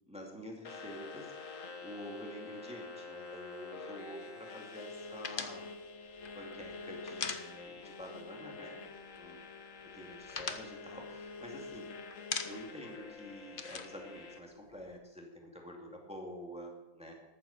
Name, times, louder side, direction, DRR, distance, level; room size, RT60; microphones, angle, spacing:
voice 1, 0.1-5.7 6.0-8.8 9.2-9.4 9.8-11.9 12.4-17.1, equal, 5° right, 0 dB, 2.3 m, -48 dB
sound 1, 0.6-14.4, left 4 dB, 55° left, 1.5 m, -47 dB
sound 2, 5.2-8.0 8.3-8.5 8.8-9.4 9.8-11.8 12.1-12.9 13.1-14.9, left 5 dB, 40° left, 0.9 m, -41 dB
14.5 x 12.0 x 4.3 m, 1.1 s
omnidirectional pair, 1.7 m